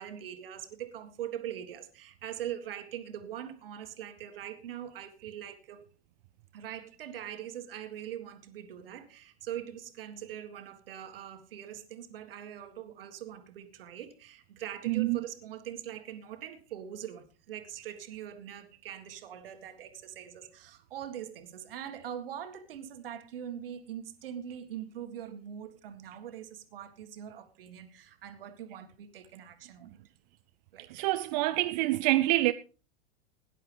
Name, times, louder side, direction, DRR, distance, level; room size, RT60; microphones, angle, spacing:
voice 1, 0.0-5.9 6.5-30.0 30.7-30.9, right 10 dB, 60° right, 1.8 m, -42 dB
voice 2, 14.9-15.2 30.9-32.5, right 18 dB, 40° right, 0.5 m, -26 dB
18.0 x 10.5 x 3.4 m
figure-of-eight pair, 90°, 32 cm